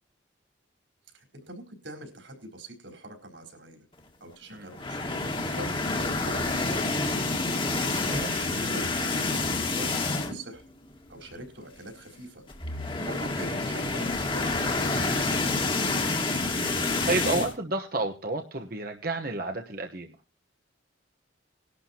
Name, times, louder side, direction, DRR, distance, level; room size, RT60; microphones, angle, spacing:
voice 1, 1.1-3.8 4.2-7.3 8.1-10.6 11.1-12.4 13.0-15.0, right 1 dB, 70° right, 3 dB, 4.4 m, -42 dB
sound 1, 4.7-10.5 10.9-11.1 11.3-11.4 12.5-17.5, left 3 dB, 25° left, 1.8 m, -28 dB
voice 2, 8.1-8.5 15.8-16.2 16.5-20.1, right 2 dB, 50° right, 4 dB, 1.2 m, -31 dB
19.5 x 12.0 x 2.9 m, 0.34 s
head